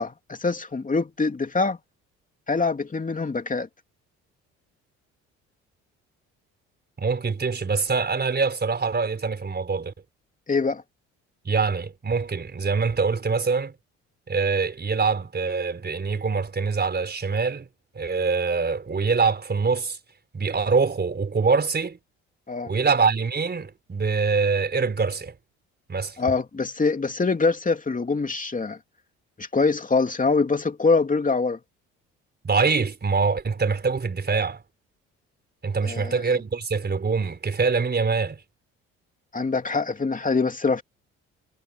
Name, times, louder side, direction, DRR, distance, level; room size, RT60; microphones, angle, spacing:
voice 1, 0.0-1.8 2.5-3.7 10.5-10.8 22.5-22.7 26.2-28.8 29.4-31.6 35.8-36.1 39.3-40.8, left 4 dB, 25° left, 2.8 m, -24 dB
voice 2, 7.0-9.9 11.4-13.7 14.3-17.7 17.9-20.0 20.3-22.0 22.7-25.3 25.9-26.2 32.4-34.6 35.6-38.4, right 4 dB, 35° right, 4.6 m, -24 dB
supercardioid pair, 65°, 31 cm